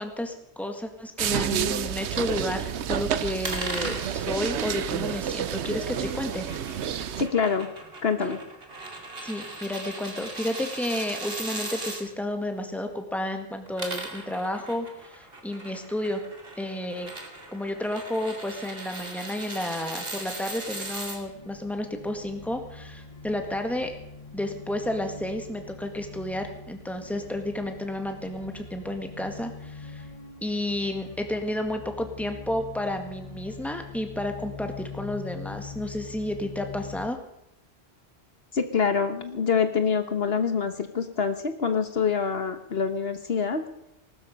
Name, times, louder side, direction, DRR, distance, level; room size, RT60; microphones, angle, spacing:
voice 1, 0.0-6.5 9.2-16.2 16.6-17.1 17.5-23.9 24.3-30.1 30.4-37.2, left 1 dB, ahead, 5 dB, 1.8 m, -31 dB
sound 1, 1.2-7.3, right 9 dB, 85° right, 1.0 m, -29 dB
sound 2, 3.4-12.0 13.5-21.2, right 2 dB, 60° right, 2.7 m, -39 dB
voice 2, 7.2-7.7 8.0-8.4 38.5-43.6, left 6 dB, 65° left, 9 dB, 1.4 m, -25 dB
sound 3, 20.6-37.1, left 5 dB, 30° left, 1.5 m, -43 dB
20.0 x 12.5 x 5.3 m, 0.79 s
omnidirectional pair, 1.1 m